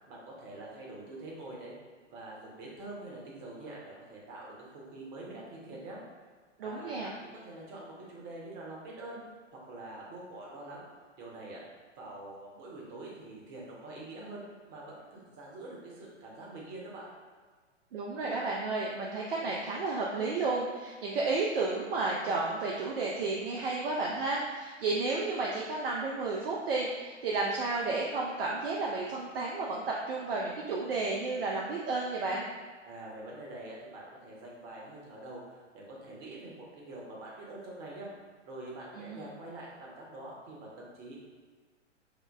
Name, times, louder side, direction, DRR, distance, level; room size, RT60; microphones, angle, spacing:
voice 1, 0.1-1.7 2.1-6.0 6.6-7.1 7.4-9.2 9.5-10.9 11.2-11.6 12.0-14.4 14.7-17.1 32.9-38.1 38.5-41.2, right 2 dB, 30° right, -3 dB, 0.9 m, -45 dB
voice 2, 6.6-7.1 17.9-32.5 38.9-39.3, right 3 dB, 50° right, -3 dB, 0.5 m, -32 dB
5.6 x 2.0 x 2.3 m, 1.5 s
figure-of-eight pair, 110°, 37 cm